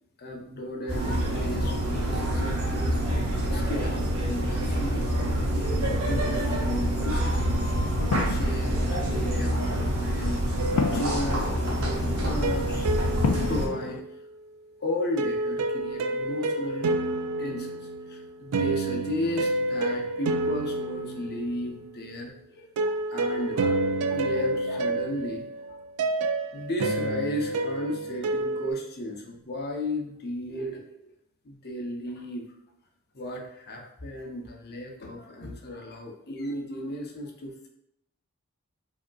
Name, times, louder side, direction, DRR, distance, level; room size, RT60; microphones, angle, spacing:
voice 1, 0.2-3.0 3.5-7.5 7.9-10.7 10.9-11.5 11.8-13.0 13.5-14.0 14.8-16.9 17.4-25.8 26.5-31.1 31.4-32.5 33.1-37.7, left 1 dB, 45° left, 1 dB, 0.7 m, -35 dB
sound 1, 0.9-13.7, right 1 dB, 65° right, 1.0 m, -27 dB
sound 2, 7.4-14.0, left 5 dB, 65° left, 0.3 m, -34 dB
sound 3, 10.6-11.6 12.4-14.2 15.2-21.9 22.8-28.7, right 2 dB, 85° right, 0.4 m, -29 dB
5.0 x 2.8 x 2.3 m, 0.78 s
head